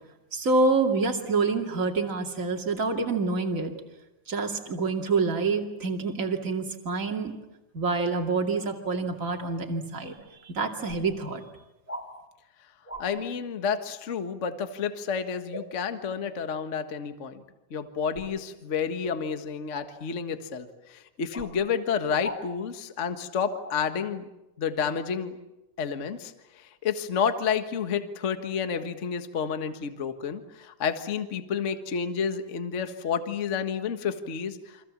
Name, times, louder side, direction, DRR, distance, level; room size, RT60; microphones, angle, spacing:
voice 1, 0.3-3.7 4.3-7.4 7.7-10.2 10.4-11.4, right 3 dB, 25° right, 3 dB, 2.4 m, -27 dB
sound 1, 10.2-10.3 10.8-11.0 11.9-12.1 12.9-13.1 15.5-15.7 18.1-18.4 19.7-19.9 21.3-21.5 22.2-22.4 23.6-23.8, equal, 5° left, 2.8 m, -39 dB
voice 2, 13.0-17.4 17.7-24.2 24.6-25.4 25.8-34.8, left 6 dB, 55° left, 8 dB, 0.8 m, -30 dB
29.5 x 25.0 x 7.4 m, 0.98 s
omnidirectional pair, 3.8 m